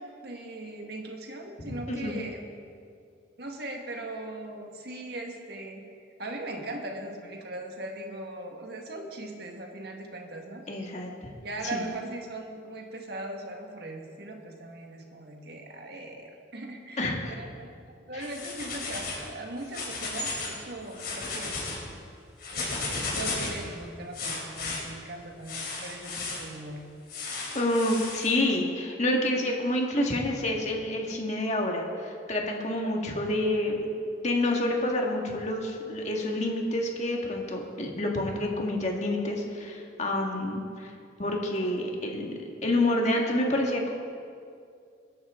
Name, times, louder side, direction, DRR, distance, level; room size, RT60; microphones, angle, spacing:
voice 1, 0.0-2.5 3.4-5.8 6.2-10.6 11.4-21.7 22.5-26.8, right 2 dB, 60° right, 2 dB, 1.7 m, -39 dB
voice 2, 1.6-2.1 10.7-11.1 11.7-11.8 17.0-17.4 18.1-18.3 27.5-33.9 34.2-40.9 41.2-42.3 42.6-43.9, left 1 dB, 40° left, 0 dB, 1.9 m, -28 dB
sound 1, 18.2-19.2 19.6-20.6 20.9-21.8 22.4-23.6 24.1-24.8 25.5-26.4 27.1-28.3, left 3 dB, 60° left, 3.6 m, -34 dB
21.5 x 10.5 x 3.8 m, 2.3 s
head